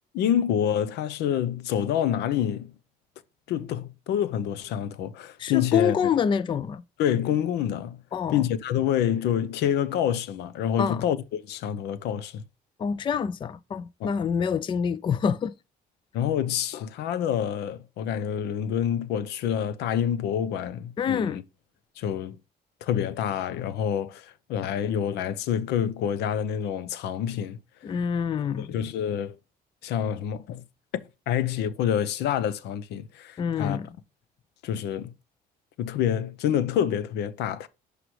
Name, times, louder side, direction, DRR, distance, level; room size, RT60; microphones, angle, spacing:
voice 1, 0.1-2.7 3.5-6.1 7.0-8.0 8.3-12.4 14.0-14.1 16.1-21.4 22.0-22.4 22.8-27.6 27.9-28.0 28.6-29.4 29.8-30.6 30.9-33.8 34.6-35.1 35.8-37.7, left 9 dB, 80° left, 0.8 m, -27 dB
voice 2, 5.4-6.8 8.1-8.4 10.8-11.0 12.8-15.5 21.0-21.4 27.8-28.7 33.4-33.9, left 7 dB, 30° left, 0.4 m, -26 dB
11.0 x 4.9 x 3.2 m
cardioid pair, 110°, 17 cm